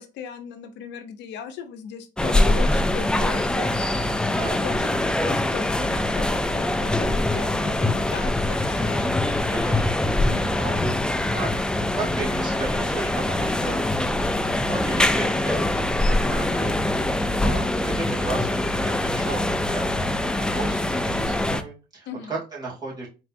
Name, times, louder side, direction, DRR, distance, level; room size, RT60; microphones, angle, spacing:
voice 1, 0.0-4.1 4.6-9.1 10.2-10.6 22.1-22.4, left 7 dB, 75° left, 9 dB, 0.7 m, -37 dB
sound 1, 2.2-21.6, left 1 dB, 5° left, 0.3 m, -23 dB
voice 2, 4.3-4.6 9.5-10.0 10.3-10.9 11.2-13.8 14.2-18.6 18.8-23.1, right 3 dB, 20° right, -5 dB, 2.2 m, -35 dB
4.5 x 3.4 x 2.5 m, 0.30 s
cardioid pair, 125°, 18 cm